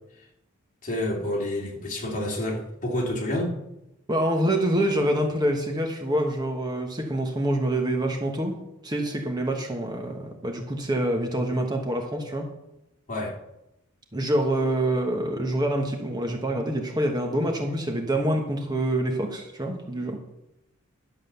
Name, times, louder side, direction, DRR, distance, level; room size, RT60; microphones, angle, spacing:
voice 1, 0.8-3.5 13.1-13.3, left 1 dB, 40° left, -1 dB, 2.8 m, -28 dB
voice 2, 4.1-8.6 8.8-12.5 14.1-20.2, right 1 dB, 20° right, 2 dB, 1.2 m, -26 dB
11.5 x 7.3 x 6.9 m, 0.88 s
head